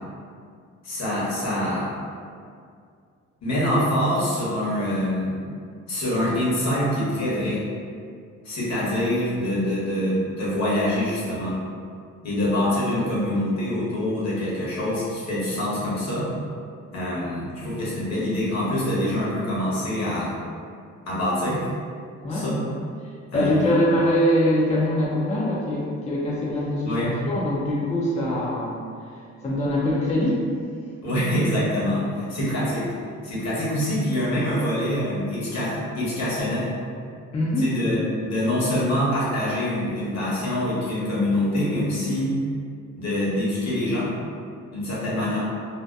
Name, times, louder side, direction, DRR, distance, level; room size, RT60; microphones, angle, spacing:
voice 1, 0.8-1.9 3.4-5.4 5.9-7.6 8.4-11.6 12.2-16.3 16.9-20.3 21.1-21.7 22.3-22.7 23.3-23.7 26.8-27.1 31.0-32.0 32.3-32.9 33.2-36.7 37.6-42.3 43.0-44.1 44.7-45.4, left 1 dB, 60° left, -8 dB, 1.0 m, -25 dB
voice 2, 22.2-22.6 23.0-26.9 27.3-28.9 29.4-30.4 37.3-37.7, left 1 dB, 25° left, -6 dB, 0.4 m, -23 dB
2.7 x 2.1 x 2.2 m, 2.2 s
cardioid pair, 90°, 30 cm